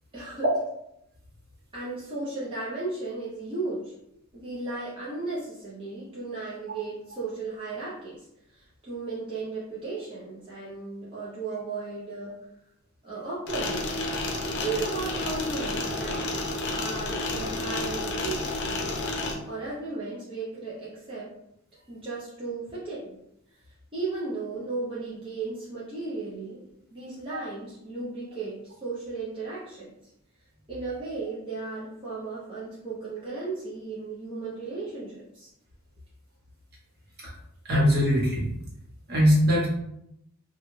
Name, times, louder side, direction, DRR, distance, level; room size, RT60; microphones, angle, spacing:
voice 1, 0.1-0.5 1.7-3.9 4.3-8.3 8.5-12.4 13.0-14.0 14.6-16.2 16.7-18.5 19.5-21.3 21.9-23.2 23.9-30.0 30.7-35.5, right 3 dB, 25° right, -9 dB, 0.7 m, -35 dB
sound 1, 13.5-19.3, left 2 dB, 55° left, 0.6 m, -30 dB
voice 2, 37.7-38.5 39.1-39.7, equal, 50° right, -5 dB, 1.2 m, -21 dB
3.1 x 2.3 x 3.1 m, 0.80 s
head